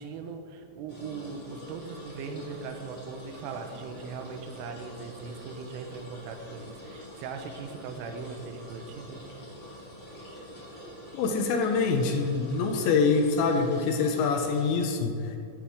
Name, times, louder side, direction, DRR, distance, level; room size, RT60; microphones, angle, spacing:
voice 1, 0.0-9.2, right 5 dB, 90° right, 5 dB, 3.3 m, -39 dB
sound 1, 0.9-14.7, equal, 45° left, 0.8 m, -46 dB
voice 2, 11.1-15.4, left 4 dB, 80° left, 3 dB, 2.8 m, -25 dB
14.0 x 7.5 x 3.6 m, 2.5 s
omnidirectional pair, 5.6 m